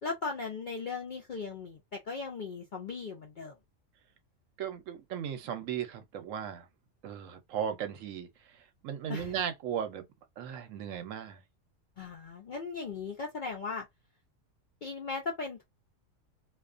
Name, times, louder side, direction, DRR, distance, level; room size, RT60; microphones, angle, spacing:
voice 1, 0.0-3.5 9.1-9.4 12.0-13.9 14.8-15.6, left 4 dB, 65° left, 0.5 m, -38 dB
voice 2, 4.6-6.7 7.0-10.1 10.4-11.4, right 8 dB, 75° right, 1.0 m, -37 dB
2.3 x 2.2 x 2.4 m
omnidirectional pair, 1.4 m